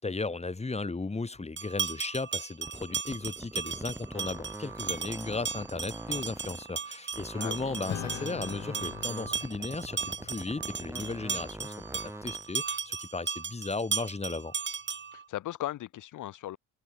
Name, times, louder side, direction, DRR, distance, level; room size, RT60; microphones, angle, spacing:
voice 1, 0.0-11.7 12.2-14.5, left 3 dB, 20° left, 3.9 m, -35 dB
sound 1, 1.6-15.2, right 6 dB, 35° right, 3.0 m, -36 dB
sound 2, 2.6-6.8 7.1-12.5, right 1 dB, 10° right, 2.8 m, -43 dB
voice 2, 7.4-7.8 15.1-16.6, left 14 dB, 80° left, 3.9 m, -37 dB
Acoustic guitar / Strum, 7.9-12.7, left 11 dB, 60° left, 1.7 m, -44 dB
cardioid pair, 90°, 30 cm